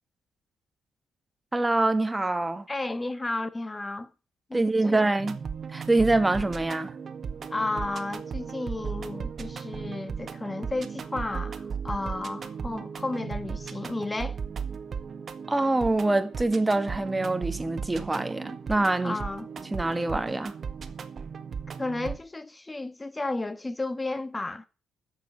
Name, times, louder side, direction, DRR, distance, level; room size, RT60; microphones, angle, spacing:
voice 1, 1.5-2.7 4.5-5.4 5.7-6.9 15.5-19.2 19.7-20.6, right 2 dB, 15° right, 1.6 m, -25 dB
voice 2, 2.7-4.1 4.5-5.0 7.5-14.4 19.0-19.5 21.8-24.7, left 2 dB, 20° left, 1.4 m, -33 dB
sound 1, 5.2-22.2, right 6 dB, 50° right, 1.7 m, -36 dB
12.0 x 7.2 x 8.2 m
cardioid pair, 95°, 0 cm